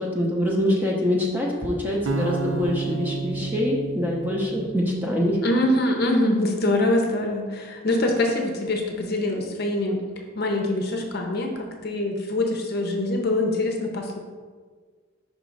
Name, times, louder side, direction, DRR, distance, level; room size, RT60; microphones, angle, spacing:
voice 1, 0.0-5.4, left 1 dB, 10° right, -3 dB, 0.8 m, -24 dB
sound 1, 2.1-5.2, right 4 dB, 65° right, 0.4 m, -31 dB
voice 2, 5.4-10.0 10.3-14.2, left 1 dB, 50° left, 2 dB, 0.7 m, -24 dB
5.2 x 3.7 x 5.2 m, 1.5 s
head